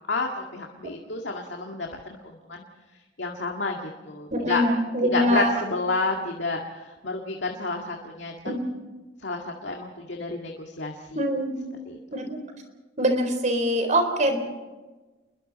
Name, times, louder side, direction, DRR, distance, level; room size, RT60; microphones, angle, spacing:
voice 1, 0.1-2.6 3.2-4.6 5.0-8.3 9.2-11.2 11.9-12.0, left 3 dB, 75° left, 1 dB, 2.0 m, -30 dB
voice 2, 4.3-5.5 8.5-8.6 11.2-11.5 12.1-12.4 13.0-14.4, equal, 45° right, 6 dB, 4.0 m, -23 dB
29.5 x 22.0 x 4.2 m, 1.2 s
head